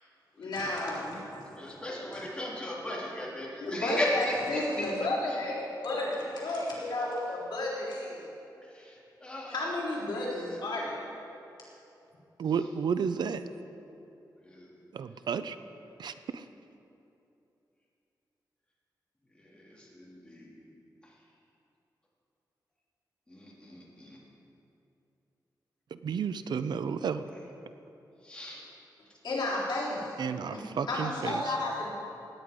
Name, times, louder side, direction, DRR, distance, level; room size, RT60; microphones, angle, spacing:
voice 1, 0.4-1.5 2.1-2.2 3.6-8.3 9.5-11.1 29.2-30.2 30.5-31.9, left 2 dB, 75° left, -7 dB, 3.7 m, -32 dB
voice 2, 1.5-4.3 8.7-9.7 14.4-14.7 19.4-20.5 23.3-24.2 28.2-28.6, left 1 dB, 10° left, -6 dB, 3.0 m, -37 dB
voice 3, 12.4-13.5 14.9-15.6 16.0-16.5 25.9-27.3 30.2-31.4, right 6 dB, 75° right, 11 dB, 0.5 m, -32 dB
18.0 x 9.7 x 5.1 m, 2.8 s
wide cardioid pair, 175°, 7 cm